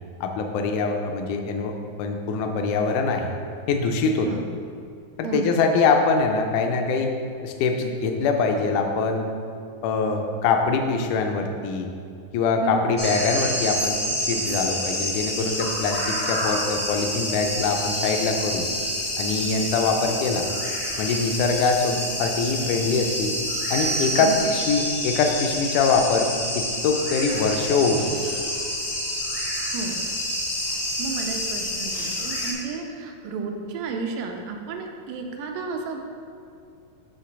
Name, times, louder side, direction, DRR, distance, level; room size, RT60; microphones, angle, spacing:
voice 1, 0.2-3.3 3.7-4.3 5.2-7.1 7.4-9.3 9.8-11.9 12.3-14.0 14.3-18.7 19.2-20.4 21.0-23.4 23.7-26.3 26.6-28.1, left 4 dB, 75° left, 4 dB, 2.0 m, -23 dB
voice 2, 5.2-5.6 12.6-12.8 24.2-24.5 29.7-30.0 31.0-36.0, right 4 dB, 85° right, 2 dB, 2.3 m, -32 dB
sound 1, 13.0-32.5, equal, 55° left, 0.6 m, -28 dB
8.1 x 3.3 x 5.9 m, 2.4 s
omnidirectional pair, 3.8 m